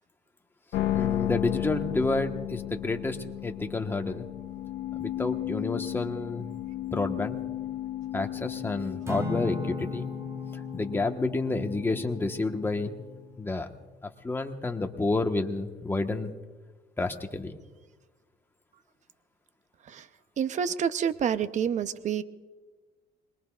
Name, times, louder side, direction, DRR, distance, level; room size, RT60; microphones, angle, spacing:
sound 1, 0.7-13.0, left 13 dB, 85° left, 0.9 m, -35 dB
voice 1, 0.9-3.2 3.4-4.3 4.9-6.5 6.9-7.4 8.1-10.1 10.7-13.0 13.4-13.7 14.0-16.3 17.0-17.5, left 3 dB, 15° left, 4 dB, 1.3 m, -30 dB
Acoustic guitar / Strum, 9.0-13.5, left 3 dB, 15° right, 2.1 m, -37 dB
voice 2, 20.4-22.2, right 8 dB, 45° right, 12 dB, 0.7 m, -28 dB
26.5 x 21.5 x 2.4 m, 1.3 s
cardioid pair, 110°, 17 cm